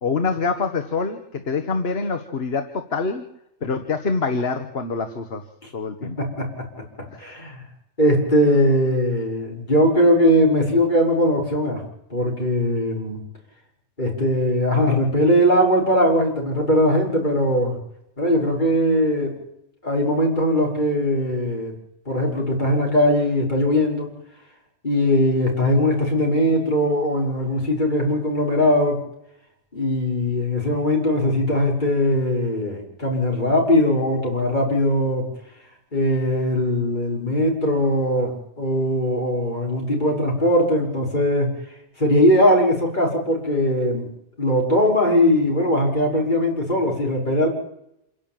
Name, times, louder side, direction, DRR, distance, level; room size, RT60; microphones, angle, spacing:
voice 1, 0.0-3.2 3.6-5.4 5.7-6.2, left 4 dB, 60° left, 7 dB, 1.7 m, -25 dB
voice 2, 6.0-6.5 7.2-7.7 8.0-11.8 12.1-13.2 14.0-17.8 18.2-19.4 19.8-21.7 22.1-24.1 24.8-29.0 29.7-35.3 35.9-41.6 42.0-44.1 44.4-47.5, equal, 40° left, -1 dB, 6.1 m, -20 dB
27.0 x 11.5 x 9.1 m, 0.80 s
omnidirectional pair, 1.2 m